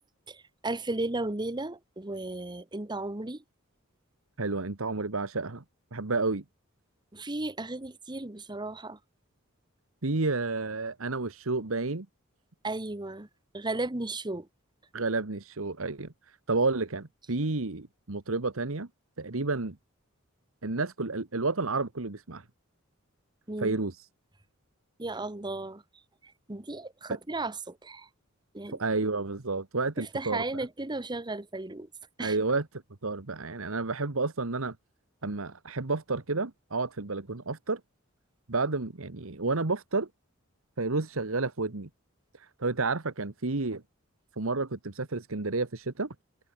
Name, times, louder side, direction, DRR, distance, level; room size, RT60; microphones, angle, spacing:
voice 1, 0.3-3.4 7.1-9.0 12.6-13.3 13.5-14.5 23.5-23.8 25.0-25.8 26.2-28.1 28.5-28.8 30.0-31.9 32.2-32.4, right 2 dB, 20° right, 1.2 m, -35 dB
voice 2, 4.4-5.6 5.9-6.4 10.0-12.1 14.9-18.9 19.2-19.8 20.6-22.4 23.6-24.1 27.1-27.2 28.7-30.4 32.2-32.7 33.0-34.7 35.2-37.8 38.5-40.1 40.8-41.9 42.4-43.8 44.4-46.1, right 3 dB, 70° right, 1.4 m, -30 dB
head